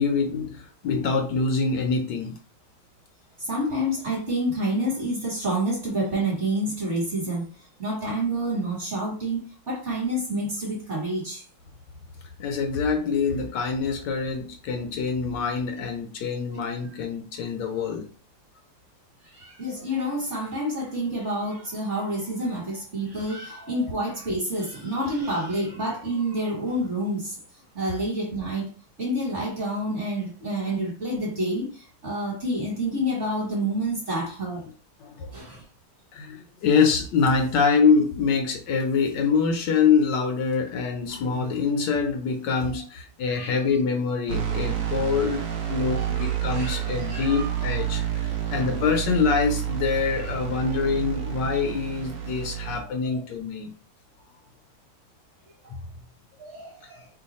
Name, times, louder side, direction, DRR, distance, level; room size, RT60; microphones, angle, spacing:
voice 1, 0.0-2.3 12.4-18.1 35.0-35.3 36.1-53.7, left 5 dB, 75° left, 4 dB, 1.1 m, -25 dB
voice 2, 3.4-7.5 7.8-11.4 19.2-27.4 27.7-28.7 29.0-34.6 35.3-35.6 42.7-42.8 43.2-43.7 45.9-48.0 50.2-50.4 50.6-50.8 53.0-53.2 56.4-57.1, right 1 dB, 40° right, -4 dB, 1.3 m, -29 dB
sound 1, 44.3-52.8, right 10 dB, 80° right, 0.7 m, -29 dB
3.1 x 2.3 x 4.0 m, 0.41 s
omnidirectional pair, 2.1 m